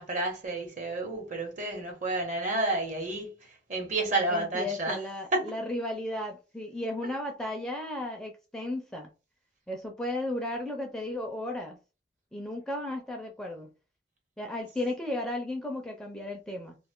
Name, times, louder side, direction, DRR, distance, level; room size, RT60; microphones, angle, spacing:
voice 1, 0.0-5.0 5.3-5.5, right 2 dB, 45° right, 1.1 m, -30 dB
voice 2, 4.3-9.1 9.7-11.8 12.3-13.7 14.4-16.8, left 1 dB, 5° left, 0.5 m, -34 dB
2.5 x 2.4 x 3.5 m
head